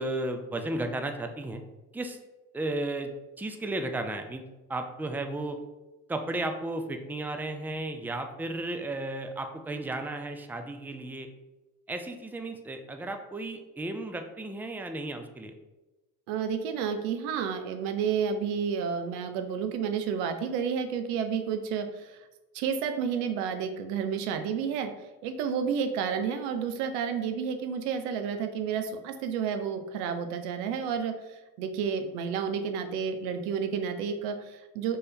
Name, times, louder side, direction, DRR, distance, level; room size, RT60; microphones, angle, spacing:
voice 1, 0.0-1.6 1.9-2.2 2.5-3.1 3.4-4.4 4.7-5.6 6.1-11.3 11.9-15.5, right 2 dB, 5° right, 6 dB, 0.5 m, -34 dB
voice 2, 16.3-22.3 22.5-24.9 25.2-35.0, right 7 dB, 85° right, 7 dB, 0.6 m, -31 dB
3.6 x 3.3 x 4.3 m, 1.1 s
hypercardioid pair, 55°, 45 cm